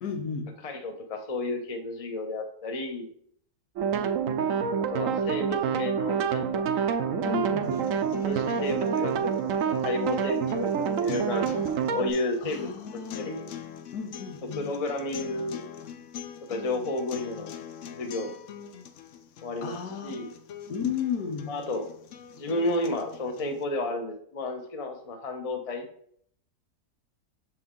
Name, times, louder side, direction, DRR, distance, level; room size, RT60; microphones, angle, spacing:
voice 1, 0.0-0.5 7.2-7.7 12.4-13.3 13.9-14.6 19.6-20.2 20.7-21.5, left 7 dB, 80° left, 5 dB, 1.4 m, -33 dB
voice 2, 0.6-3.1 4.8-6.7 8.2-11.5 11.9-13.5 14.6-15.6 16.4-17.5 17.9-18.3 19.4-20.3 21.5-21.9 22.3-25.9, left 2 dB, 30° left, 4 dB, 0.7 m, -32 dB
sound 1, 3.8-12.1, right 7 dB, 65° right, 0.9 m, -27 dB
sound 2, 7.6-23.6, left 8 dB, 65° left, 0.9 m, -43 dB
6.8 x 4.4 x 3.7 m, 0.63 s
omnidirectional pair, 1.7 m